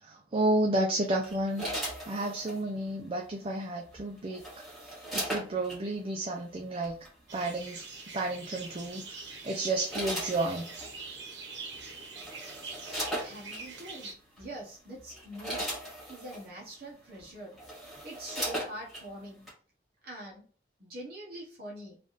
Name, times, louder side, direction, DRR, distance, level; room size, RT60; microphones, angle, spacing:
voice 1, 0.0-1.7 2.1-4.4 4.8-7.0 7.3-7.8 8.1-10.7, right 2 dB, 30° right, 0 dB, 0.5 m, -31 dB
sound 1, 1.2-2.6 3.9-5.8 6.8-7.1 8.7-9.0 9.6-10.9 11.7-11.8 12.1-13.6 14.4-14.5 15.0-16.5 17.1-17.2 17.5-19.1 19.5-19.6, equal, ahead, 1.5 m, -37 dB
sound 2, 7.3-14.1, right 4 dB, 75° right, 1.2 m, -44 dB
voice 2, 13.2-14.1 14.4-15.7 16.1-17.6 18.0-19.4 20.0-20.4 20.8-22.0, right 1 dB, 55° right, -3 dB, 1.0 m, -44 dB
3.4 x 2.5 x 3.9 m, 0.40 s
head